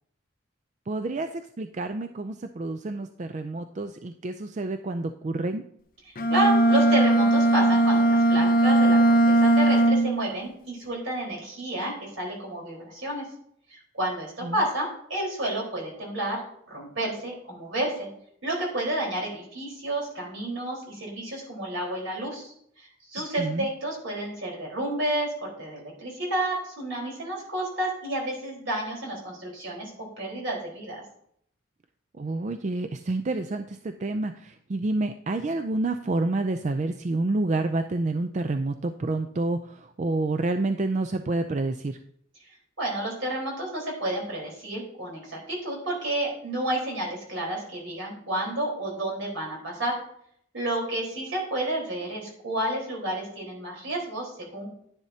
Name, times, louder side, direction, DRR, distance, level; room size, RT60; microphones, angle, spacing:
voice 1, 0.9-1.3 1.6-5.6 14.4-14.5 23.4-23.7 32.2-42.0, right 2 dB, 35° right, 8 dB, 0.4 m, -28 dB
Bowed string instrument, 6.2-10.3, right 1 dB, 45° left, 0.6 m, -19 dB
voice 2, 6.3-13.2 13.7-18.1 18.4-31.0 42.8-50.0 50.5-54.7, right 1 dB, 70° right, -2 dB, 4.1 m, -30 dB
10.5 x 10.5 x 2.8 m, 0.68 s
head